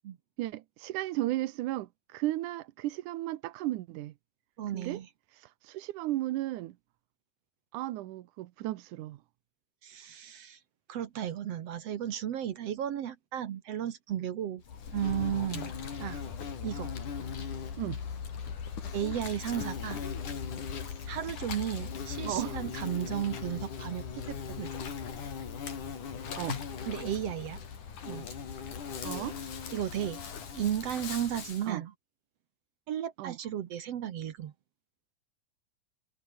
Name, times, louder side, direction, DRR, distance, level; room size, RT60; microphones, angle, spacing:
voice 1, 0.4-4.1 4.7-5.0 5.6-6.8 7.7-9.2 17.8-18.0 22.2-22.6 26.4-26.6 29.0-29.4 31.7-31.8 33.2-33.4, right 16 dB, 80° right, 2.3 m, -34 dB
voice 2, 4.6-5.1 9.8-10.6 10.9-14.6 14.9-15.7 16.0-16.2 16.6-16.9 18.9-20.0 21.1-24.7 26.9-27.6 28.1-28.3 29.7-30.2 30.5-31.9 32.9-34.5, right 10 dB, 60° right, 2.1 m, -34 dB
Insect, 14.6-31.7, left 6 dB, 75° left, 4.8 m, -39 dB
omnidirectional pair, 3.6 m